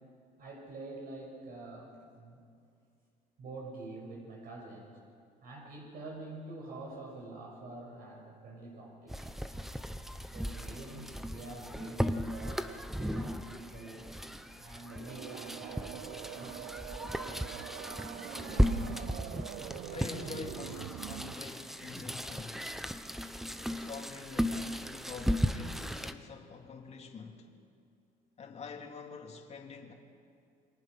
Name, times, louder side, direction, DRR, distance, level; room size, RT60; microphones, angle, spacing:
voice 1, 0.4-2.4 3.4-5.0 5.4-9.6 10.3-14.1 14.6-16.7, right 2 dB, 60° right, -1 dB, 6.3 m, -46 dB
sound 1, 9.1-26.1, equal, ahead, 0.9 m, -36 dB
sound 2, 14.9-21.3, right 13 dB, 80° right, 0.6 m, -44 dB
voice 2, 18.5-19.0 19.9-22.6 23.7-27.5 28.4-29.9, left 5 dB, 40° left, 2 dB, 2.8 m, -46 dB
28.5 x 23.0 x 6.0 m, 2.3 s
cardioid pair, 110°, 17 cm